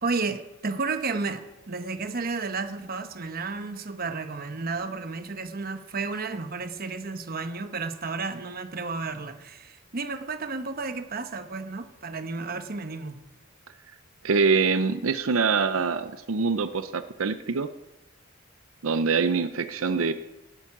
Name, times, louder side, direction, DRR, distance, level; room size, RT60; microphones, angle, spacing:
voice 1, 0.0-13.2, right 4 dB, 45° right, 1.0 m, -32 dB
voice 2, 14.2-17.7 18.8-20.1, right 5 dB, 85° right, 0.6 m, -24 dB
17.0 x 9.4 x 6.0 m
head